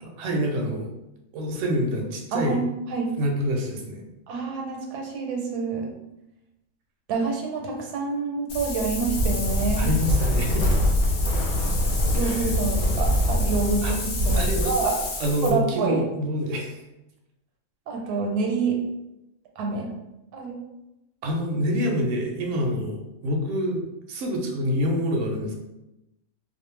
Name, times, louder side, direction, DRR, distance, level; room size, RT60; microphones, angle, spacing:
voice 1, 0.2-0.9 1.3-2.6 3.2-4.0 9.8-10.7 12.2-12.5 13.8-13.9 14.3-16.8 21.2-25.5, equal, 70° right, 1 dB, 0.8 m, -27 dB
voice 2, 2.3-3.1 4.3-5.9 7.1-9.9 12.1-14.9 15.4-16.1 17.9-18.8 19.6-19.9 20.3-20.6, right 4 dB, 85° right, 0 dB, 1.1 m, -27 dB
Wind, 8.5-15.5, left 1 dB, 65° left, 0.7 m, -24 dB
2.5 x 2.0 x 3.0 m, 0.92 s
omnidirectional pair, 1.6 m